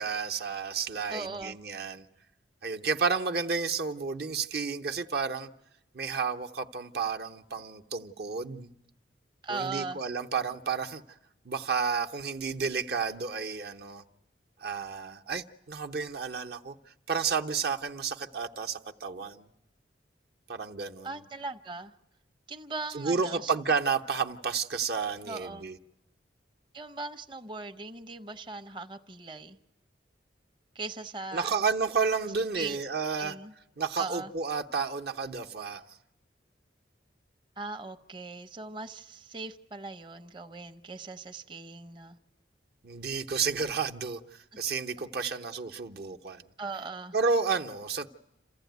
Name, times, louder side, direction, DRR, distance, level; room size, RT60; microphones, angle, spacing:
voice 1, 0.0-2.1 2.6-5.5 5.9-8.7 9.5-11.0 11.4-14.0 14.6-16.8 17.1-19.5 20.5-21.3 22.9-25.8 31.3-33.4 33.8-35.9 42.8-44.2 44.6-46.4 47.1-48.1, right 5 dB, 60° right, 0.9 m, -31 dB
voice 2, 1.1-1.6 9.4-10.0 21.0-21.9 22.5-23.5 25.2-25.7 26.7-29.6 30.7-31.5 32.5-32.8 33.2-33.5 34.0-34.3 37.6-42.2 44.5-44.6 45.2-45.4 46.6-47.1, right 3 dB, 25° right, 0.8 m, -39 dB
28.0 x 15.0 x 9.3 m
head